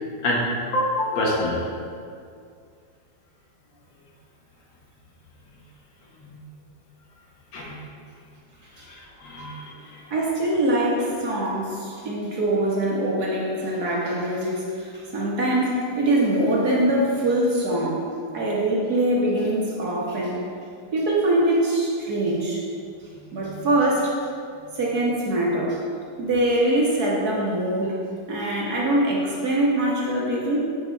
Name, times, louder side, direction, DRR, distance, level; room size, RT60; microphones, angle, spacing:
voice 1, 0.7-1.6 6.2-6.3 7.5-7.7 9.2-10.0 23.3-23.5, left 1 dB, 70° left, -3 dB, 2.1 m, -26 dB
voice 2, 10.1-18.0 18.3-20.4 20.9-22.6 23.3-24.1 24.7-25.8 26.2-28.0 28.3-30.6, right 1 dB, 55° right, -4 dB, 1.7 m, -23 dB
8.9 x 5.3 x 4.5 m, 2.3 s
omnidirectional pair, 2.2 m